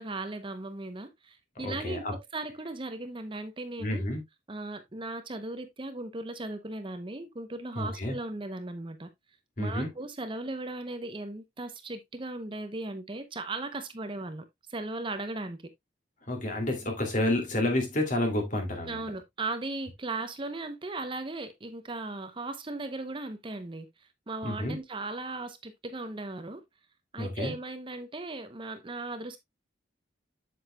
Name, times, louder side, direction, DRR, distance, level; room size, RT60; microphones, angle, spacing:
voice 1, 0.0-4.0 4.5-9.1 9.6-14.4 14.7-15.6 18.8-23.9 24.3-26.6 27.1-29.4, right 2 dB, 30° right, 0.8 m, -37 dB
voice 2, 1.6-2.1 3.8-4.2 7.8-8.2 9.6-9.9 16.3-19.0 24.4-24.8 27.2-27.5, left 1 dB, 45° left, 2.5 m, -29 dB
7.9 x 7.8 x 2.3 m
head